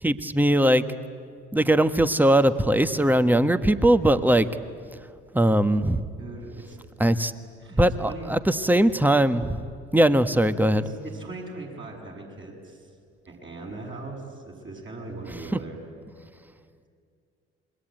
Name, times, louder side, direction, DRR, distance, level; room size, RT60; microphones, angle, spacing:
voice 1, 0.0-0.8 1.5-4.5 5.3-6.0 7.0-7.3 7.8-9.6 9.9-10.8, right 1 dB, 5° right, 12 dB, 1.4 m, -20 dB
voice 2, 6.2-6.8 7.6-8.3 10.6-13.0 13.3-15.8 16.3-16.4, right 2 dB, 35° right, -1 dB, 7.4 m, -40 dB
26.5 x 22.5 x 9.3 m, 2.3 s
hypercardioid pair, 50°, 32 cm